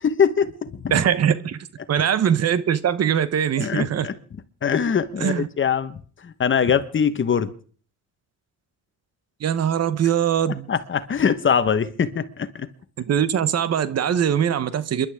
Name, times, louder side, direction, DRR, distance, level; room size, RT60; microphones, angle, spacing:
voice 1, 0.0-1.0 3.6-4.2 4.6-7.5 10.7-12.7, left 7 dB, 40° left, 1.3 m, -22 dB
voice 2, 0.9-1.6 1.9-4.1 5.2-5.5 9.4-10.7 13.1-15.1, right 9 dB, 55° right, 1.0 m, -21 dB
28.0 x 11.5 x 3.6 m
cardioid pair, 90°, 30 cm